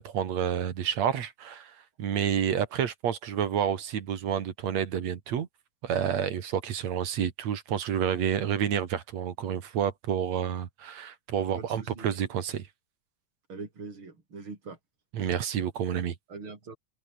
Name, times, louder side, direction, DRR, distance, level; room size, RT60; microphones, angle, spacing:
voice 1, 0.0-5.5 5.8-12.7 15.1-16.1, right 9 dB, 60° right, 2.8 m, -29 dB
voice 2, 11.5-12.1 13.5-14.8 15.2-15.3 16.3-16.8, right 4 dB, 40° right, 6.1 m, -42 dB
omnidirectional pair, 3.7 m